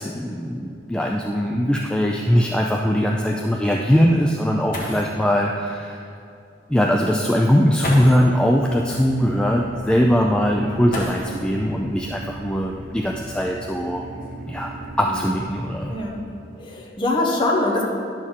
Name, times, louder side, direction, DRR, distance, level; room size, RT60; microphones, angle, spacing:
voice 1, 0.0-6.1 6.7-14.0 14.5-15.9, equal, 5° left, 0 dB, 0.3 m, -21 dB
sound 1, 0.8-0.9 1.3-1.4 2.0-2.1 4.4-4.5 4.7-5.3 6.5-6.6 7.8-8.4 10.9-11.6 13.0-13.1 13.8-15.3 16.0-16.3 16.7-17.1, left 1 dB, 50° left, 1.5 m, -33 dB
sound 2, 8.7-16.0, right 2 dB, 55° right, 0.9 m, -38 dB
voice 2, 15.9-16.2 16.6-17.8, left 2 dB, 25° left, -2 dB, 1.0 m, -23 dB
10.5 x 6.2 x 3.8 m, 2.5 s
head